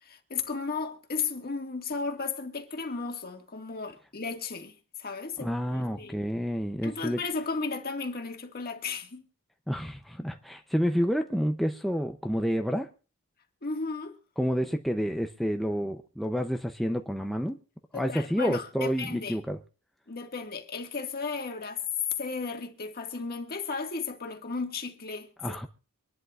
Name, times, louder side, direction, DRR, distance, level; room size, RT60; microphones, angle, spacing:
voice 1, 0.0-6.2 6.8-9.2 13.6-14.2 17.9-19.4 20.1-21.8 22.2-25.7, left 4 dB, 45° left, 1.8 m, -35 dB
voice 2, 5.4-7.2 9.7-12.9 14.4-17.6 17.9-19.6 25.4-25.7, equal, ahead, 0.6 m, -29 dB
25.0 x 11.5 x 2.4 m
head